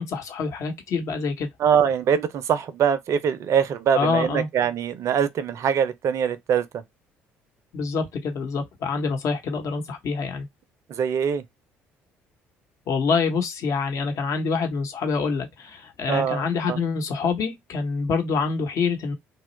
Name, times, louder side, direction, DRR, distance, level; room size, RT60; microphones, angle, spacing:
voice 1, 0.0-1.5 3.9-4.5 7.7-10.5 12.9-19.1, left 5 dB, 55° left, 1.0 m, -26 dB
voice 2, 1.6-6.6 10.9-11.4 16.1-16.8, right 8 dB, 50° right, 0.5 m, -23 dB
2.9 x 2.3 x 3.0 m
hypercardioid pair, 55°, 6 cm